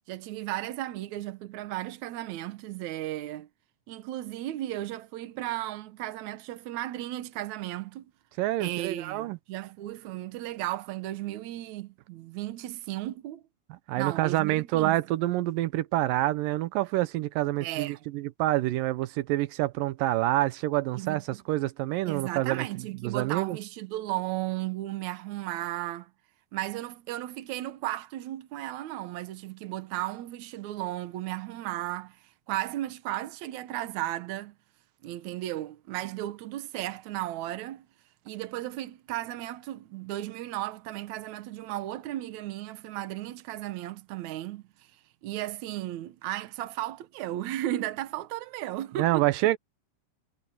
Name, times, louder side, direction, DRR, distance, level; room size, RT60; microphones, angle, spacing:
voice 1, 0.1-3.5 3.9-8.1 8.6-13.4 14.0-15.0 17.6-18.1 21.0-21.4 22.1-26.1 26.5-34.6 35.0-37.9 38.3-44.9 45.2-49.3, right 15 dB, 65° right, 2.2 m, -35 dB
voice 2, 8.4-9.4 13.9-22.7 23.0-23.6 49.0-49.6, right 16 dB, 85° right, 2.4 m, -27 dB
omnidirectional pair, 3.9 m